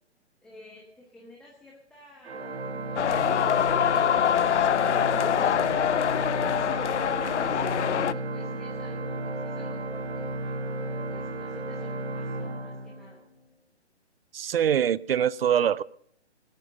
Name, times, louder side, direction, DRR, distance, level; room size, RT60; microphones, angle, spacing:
voice 1, 0.4-6.9 8.1-12.3 12.6-13.2, left 1 dB, ahead, 0.9 m, -52 dB
Organ, 2.2-13.4, right 2 dB, 85° right, 2.7 m, -34 dB
sound 1, 3.0-8.1, left 9 dB, 80° left, 0.6 m, -24 dB
voice 2, 14.3-15.8, right 9 dB, 55° right, 0.6 m, -24 dB
19.5 x 8.9 x 5.4 m
hypercardioid pair, 155°, 35 cm